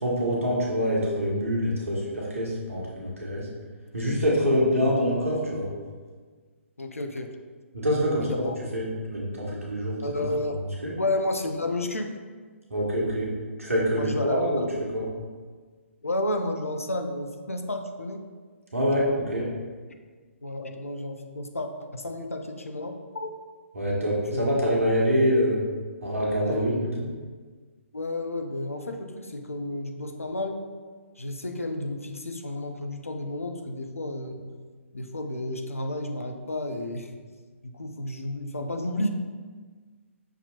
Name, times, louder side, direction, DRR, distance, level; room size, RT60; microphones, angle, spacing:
voice 1, 0.0-3.5 3.9-5.7 7.7-8.3 8.7-10.2 10.8-10.9 12.7-13.3 13.6-14.6 14.9-15.1 18.7-19.5 23.7-25.6 26.0-27.1, equal, 75° right, -4 dB, 1.1 m, -25 dB
voice 2, 6.8-7.3 8.2-8.6 10.0-10.6 11.0-12.1 14.0-14.7 16.0-18.3 20.4-23.3 24.1-24.5 26.5-26.8 27.9-30.6 31.2-34.4 34.9-37.2 37.6-39.1, left 1 dB, 80° left, 5 dB, 0.5 m, -31 dB
5.9 x 2.8 x 2.8 m, 1.5 s
figure-of-eight pair, 130°, 7 cm